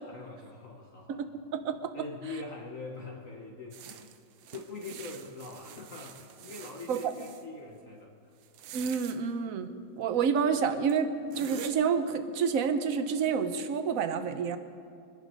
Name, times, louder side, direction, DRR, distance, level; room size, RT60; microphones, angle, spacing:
voice 1, 0.1-1.3 1.9-4.1 4.5-8.4 10.0-10.1, left 3 dB, 50° left, 0 dB, 1.4 m, -43 dB
voice 2, 1.1-1.9 6.9-7.0 8.7-9.7 10.0-14.6, right 6 dB, 55° right, 9 dB, 1.1 m, -29 dB
sound 1, 3.7-7.4 8.4-9.2 10.4-10.5 10.9-11.0 11.3-11.7, right 9 dB, 90° right, 1.5 m, -46 dB
24.5 x 10.5 x 5.4 m, 2.4 s
omnidirectional pair, 2.0 m